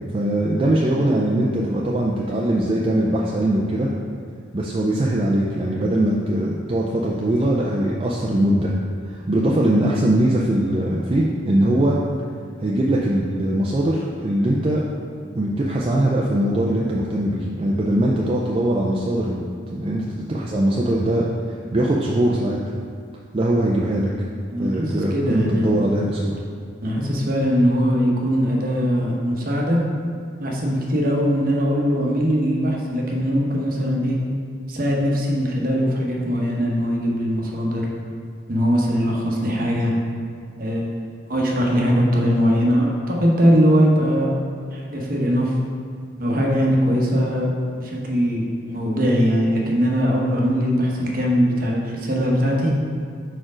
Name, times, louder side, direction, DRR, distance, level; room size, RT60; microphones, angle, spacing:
voice 1, 0.1-3.9 4.5-8.7 9.0-12.0 12.6-14.8 15.4-19.4 19.7-22.6 23.3-24.1 24.6-26.4 47.1-47.2, right 1 dB, 30° right, -4 dB, 0.4 m, -21 dB
voice 2, 24.5-25.7 26.8-29.8 30.4-34.2 34.7-37.9 38.5-39.9 40.6-41.0 41.3-44.3 44.7-45.5 46.2-47.6 47.8-52.8, equal, 50° right, -1 dB, 0.9 m, -21 dB
4.5 x 4.4 x 4.9 m, 2.2 s
head